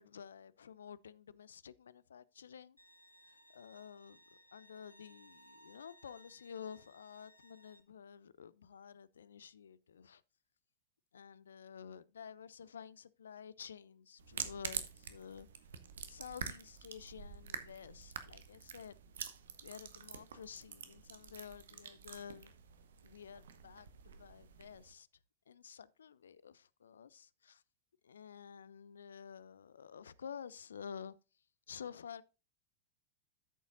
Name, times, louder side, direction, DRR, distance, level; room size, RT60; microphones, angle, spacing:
voice 1, 0.0-2.8 3.2-4.2 4.5-10.2 11.1-15.5 16.1-19.0 19.6-22.5 23.0-25.1 25.5-27.6 28.0-31.1 31.7-32.2, left 7 dB, 70° left, 0.4 m, -51 dB
Bowed string instrument, 2.8-7.8, equal, 85° left, 1.1 m, -63 dB
sound 1, 14.2-24.9, right 7 dB, 65° right, 1.0 m, -47 dB
13.0 x 7.0 x 2.5 m
figure-of-eight pair, 90°, 0 cm